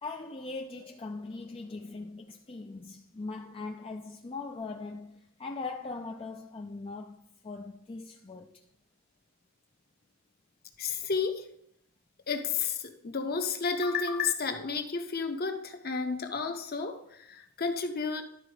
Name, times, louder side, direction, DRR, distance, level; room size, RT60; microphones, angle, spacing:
voice 1, 0.0-8.6, left 3 dB, 25° left, 0.4 m, -40 dB
voice 2, 10.8-11.5 12.3-18.2, left 5 dB, 45° left, 0.9 m, -31 dB
11.5 x 4.4 x 5.0 m
head